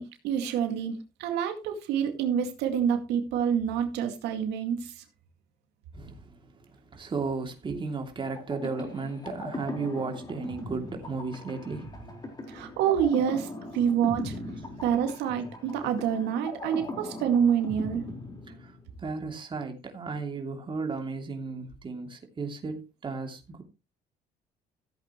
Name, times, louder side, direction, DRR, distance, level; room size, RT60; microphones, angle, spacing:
voice 1, 0.0-5.0 12.5-14.3 14.8-18.0, right 8 dB, 85° right, 2.2 m, -27 dB
voice 2, 5.9-6.3 6.7-12.2 18.6-18.7 19.0-23.6, right 4 dB, 30° right, 2.9 m, -34 dB
sound 1, 8.3-19.0, left 1 dB, 25° left, 4.4 m, -39 dB
15.5 x 8.4 x 3.1 m
cardioid pair, 110°, 17 cm